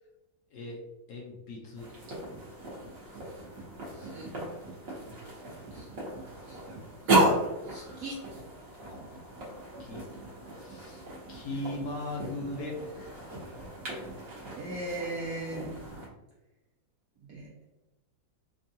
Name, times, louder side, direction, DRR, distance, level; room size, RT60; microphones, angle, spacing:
voice 1, 1.1-1.9 8.8-10.1 10.6-11.0 11.3-13.2, left 2 dB, 70° left, -2 dB, 1.0 m, -39 dB
sound 1, 1.7-16.1, right 2 dB, 55° right, 1.1 m, -34 dB
voice 2, 3.9-4.3 5.7-6.0 6.5-6.6 7.1-7.2 7.7-8.2 14.5-15.7 17.3-17.5, right 2 dB, 75° right, -3 dB, 0.8 m, -38 dB
3.5 x 2.3 x 2.6 m, 1.0 s
omnidirectional pair, 2.0 m